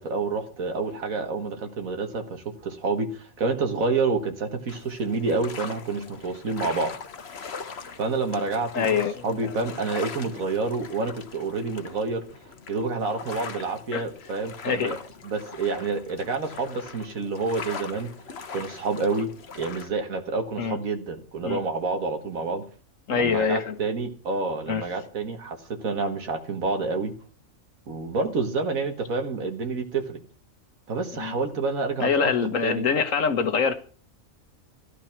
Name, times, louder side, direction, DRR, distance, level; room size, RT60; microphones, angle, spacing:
voice 1, 0.0-6.9 8.0-9.0 9.2-12.2 12.7-15.0 15.2-18.1 18.5-22.6 23.1-27.1 27.9-30.2 30.9-32.9, right 3 dB, 80° right, 6 dB, 1.9 m, -28 dB
sound 1, 4.7-19.9, left 5 dB, 50° left, 1.3 m, -41 dB
voice 2, 8.7-9.5 13.9-14.0 14.6-14.9 20.6-20.8 21.4-21.6 23.1-23.8 24.7-24.8 31.1-31.3 32.0-33.7, left 6 dB, 70° left, 10 dB, 1.6 m, -25 dB
14.5 x 12.0 x 6.0 m, 0.42 s
omnidirectional pair, 1.4 m